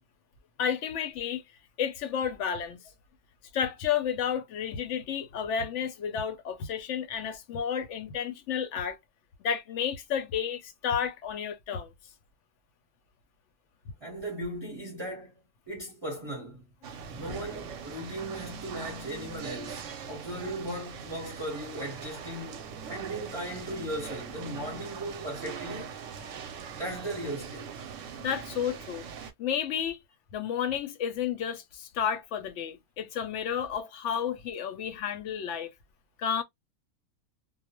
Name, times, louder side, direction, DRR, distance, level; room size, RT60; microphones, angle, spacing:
voice 1, 0.6-1.4 1.8-2.8 3.5-9.0 9.4-11.9 28.2-29.1 29.4-30.0 30.3-35.7 36.2-36.4, left 8 dB, 65° left, 0.8 m, -31 dB
voice 2, 14.0-15.4 15.7-16.7 17.1-22.6 22.9-26.0 26.7-27.7, right 1 dB, 25° right, 0.7 m, -37 dB
sound 1, 16.8-29.3, right 7 dB, 65° right, 0.9 m, -41 dB
2.3 x 2.1 x 2.9 m
omnidirectional pair, 1.5 m